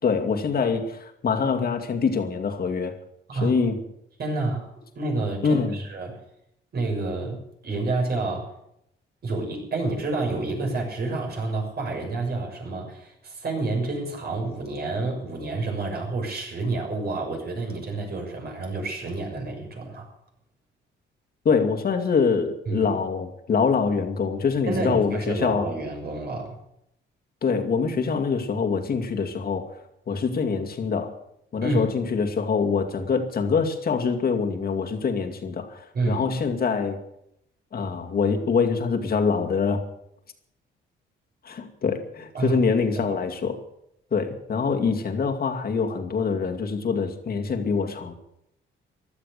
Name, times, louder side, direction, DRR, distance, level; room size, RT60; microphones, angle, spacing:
voice 1, 0.0-3.0 3.3-3.8 5.4-5.8 21.4-25.7 27.4-29.8 30.1-31.2 31.5-37.0 37.7-39.9 41.4-43.6 44.1-48.1, left 5 dB, 50° left, 4 dB, 2.4 m, -24 dB
voice 2, 4.2-6.1 6.7-8.5 9.2-20.1 22.7-22.9 24.7-26.6 31.6-31.9 35.9-36.2 42.3-42.6 43.0-43.2, right 2 dB, 55° right, 2 dB, 6.5 m, -29 dB
15.5 x 12.5 x 6.8 m, 0.79 s
cardioid pair, 90°, 20 cm